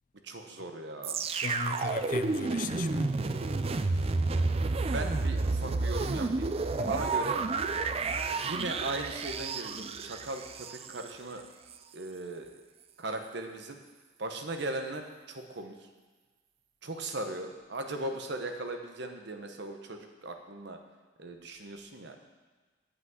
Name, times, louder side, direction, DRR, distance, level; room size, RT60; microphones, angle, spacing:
voice 1, 0.2-1.2 4.9-6.5 6.9-7.4 8.3-11.4 11.9-12.5 13.0-13.8 14.2-15.8 16.8-20.8 21.2-22.2, right 2 dB, 60° right, 5 dB, 1.0 m, -38 dB
sound 1, 1.0-11.1 11.7-11.8, right 3 dB, 30° right, 0.4 m, -31 dB
voice 2, 1.3-3.2 6.8-7.1, left 4 dB, 45° left, 11 dB, 0.4 m, -37 dB
8.3 x 5.8 x 7.8 m, 1.3 s
head